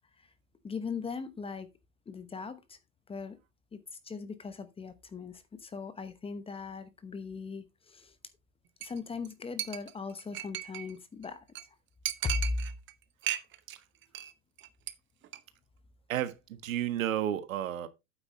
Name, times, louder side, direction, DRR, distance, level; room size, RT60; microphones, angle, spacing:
voice 1, 0.6-1.7 2.1-2.8 3.1-3.4 3.7-8.2 8.8-11.4 12.2-12.7, left 4 dB, 15° left, 0.9 m, -38 dB
Chink clink, 8.8-9.0 9.2-9.3 9.6-10.9 11.2-11.3 11.6-11.7 12.1-12.9 13.2-13.8 14.0-14.3 14.6-14.9 15.2-15.4, right 12 dB, 30° right, 0.8 m, -36 dB
voice 2, 16.1-17.9, right 11 dB, 75° right, 1.5 m, -32 dB
9.0 x 8.0 x 3.2 m
hypercardioid pair, 110°, 40 cm